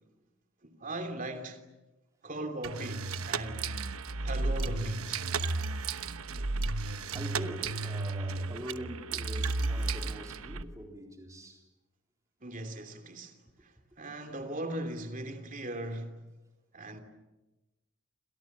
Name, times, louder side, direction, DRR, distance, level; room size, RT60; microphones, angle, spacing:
voice 1, 0.6-1.6 2.2-3.7 4.2-5.3 12.4-13.3 13.6-13.7 14.0-16.2 16.7-17.0, right 1 dB, 35° right, 3.0 m, -38 dB
sound 1, 2.6-10.6, right 3 dB, 75° right, 1.1 m, -33 dB
voice 2, 7.1-11.6, right 1 dB, 15° right, 4.1 m, -43 dB
29.5 x 27.0 x 7.4 m
head